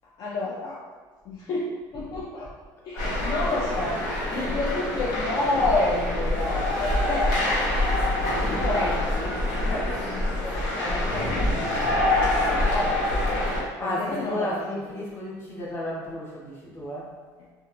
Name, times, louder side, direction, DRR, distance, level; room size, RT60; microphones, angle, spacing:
voice 1, 0.2-0.8 1.3-2.5 2.8-4.0 4.3-7.4 8.3-13.0 13.8-14.6 14.9-15.0, left 2 dB, 50° left, -4 dB, 0.3 m, -30 dB
voice 2, 2.9-3.4 4.3-4.6 5.0-5.3 9.2-9.3 9.6-9.9 13.8-17.1, left 1 dB, 25° left, -5 dB, 0.7 m, -34 dB
sound 1, 3.0-13.6, left 1 dB, 90° left, 1.0 m, -25 dB
2.8 x 2.2 x 2.4 m, 1.4 s
cardioid pair, 120°, 9 cm